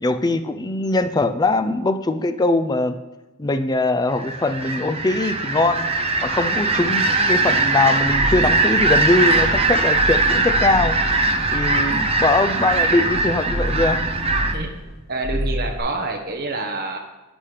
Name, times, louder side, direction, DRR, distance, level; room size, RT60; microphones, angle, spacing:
voice 1, 0.0-2.9 3.4-5.9 6.2-11.0 11.5-14.0, left 2 dB, 20° left, 10 dB, 0.4 m, -21 dB
sound 1, 4.1-14.5, right 2 dB, 25° right, 0.6 m, -20 dB
sound 2, 8.0-14.9 15.2-15.8, equal, ahead, 3.1 m, -29 dB
voice 2, 15.1-17.0, right 3 dB, 45° right, 3 dB, 1.2 m, -27 dB
11.0 x 7.9 x 3.3 m, 1.1 s
head